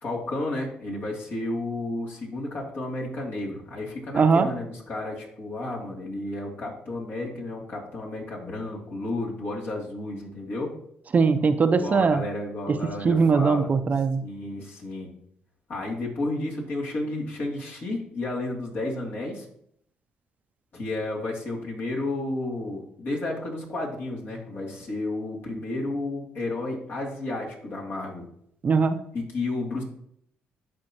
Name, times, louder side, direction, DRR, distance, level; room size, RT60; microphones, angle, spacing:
voice 1, 0.0-10.7 11.8-13.7 14.2-15.1 15.7-19.5 20.7-28.2 29.1-29.8, left 2 dB, 60° left, -2 dB, 2.8 m, -32 dB
voice 2, 4.1-4.5 11.1-12.2 12.7-12.8 13.0-14.2 28.6-29.0, right 5 dB, 40° right, 10 dB, 0.6 m, -20 dB
12.5 x 4.2 x 3.0 m, 0.69 s
supercardioid pair, 60°, 4 cm